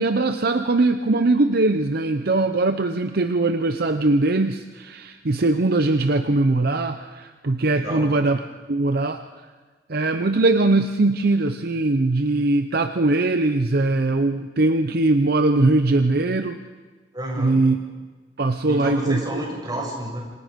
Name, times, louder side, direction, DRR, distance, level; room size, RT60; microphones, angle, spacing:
voice 1, 0.0-9.2 9.9-16.6 17.4-17.8 18.4-19.2, right 2 dB, 60° right, 8 dB, 0.8 m, -21 dB
voice 2, 7.7-8.0 17.1-17.6 18.6-20.2, right 1 dB, 25° right, -1 dB, 6.7 m, -30 dB
27.5 x 25.5 x 5.2 m, 1.4 s
head